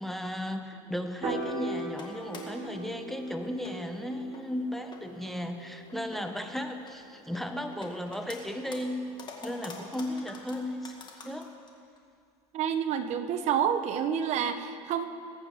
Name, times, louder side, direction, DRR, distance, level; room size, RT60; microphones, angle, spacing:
voice 1, 0.0-9.1 9.4-10.9 11.2-11.5, left 1 dB, ahead, 6 dB, 0.8 m, -35 dB
sound 1, 0.7-1.2 1.8-2.6 3.1-3.2 3.6-4.0 4.3-4.4 4.8-5.4 5.9-7.0 7.3-8.4 8.6-11.7 12.0-12.1 12.5-12.6 12.9-13.0 13.9-14.1 14.5-14.6, left 4 dB, 30° left, 1.9 m, -46 dB
Piano, 1.2-7.5, right 3 dB, 30° right, 2.0 m, -40 dB
voice 2, 12.5-15.1, right 8 dB, 55° right, 9 dB, 0.9 m, -28 dB
20.0 x 9.0 x 4.8 m, 2.3 s
supercardioid pair, 125°, 14 cm